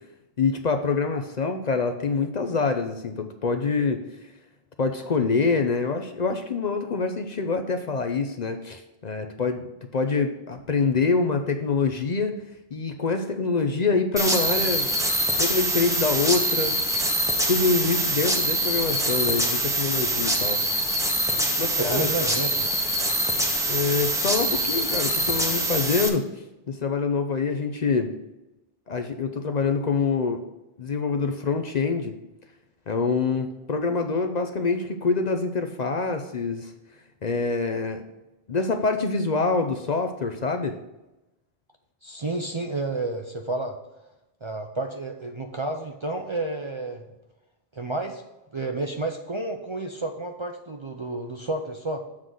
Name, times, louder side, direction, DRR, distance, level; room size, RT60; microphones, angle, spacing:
voice 1, 0.4-4.0 4.8-9.6 9.9-12.4 12.7-14.9 15.4-17.0 17.5-20.7 21.6-22.3 23.7-26.3 26.7-28.1 28.9-30.5 30.8-32.2 32.9-36.7 37.2-38.0 38.5-40.8, left 4 dB, 50° left, 6 dB, 0.6 m, -25 dB
sound 1, 14.2-26.1, right 1 dB, 5° right, 0.7 m, -24 dB
voice 2, 21.8-22.8 42.0-43.8 44.4-47.1 47.7-48.2 48.5-52.0, right 2 dB, 35° right, 3 dB, 0.5 m, -30 dB
7.4 x 3.8 x 6.3 m, 0.98 s
omnidirectional pair, 1.1 m